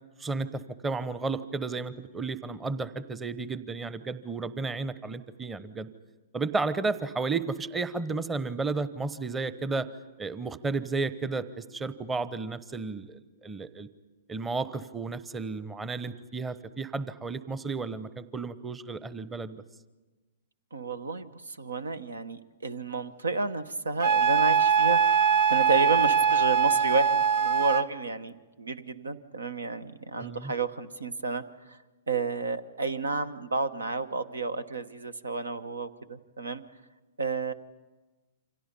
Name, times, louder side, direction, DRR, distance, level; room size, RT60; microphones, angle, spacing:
voice 1, 0.2-5.9 6.3-9.9 10.2-13.9 14.3-19.6 30.2-30.5, right 3 dB, 15° right, 15 dB, 1.0 m, -33 dB
voice 2, 20.7-31.8 32.1-36.6 37.2-37.5, right 3 dB, 80° right, 15 dB, 1.1 m, -31 dB
Wind instrument woodwind instrument, 24.0-27.9, right 6 dB, 50° right, 0.8 m, -22 dB
28.5 x 25.5 x 5.4 m, 1.2 s
figure-of-eight pair, 110°, 0 cm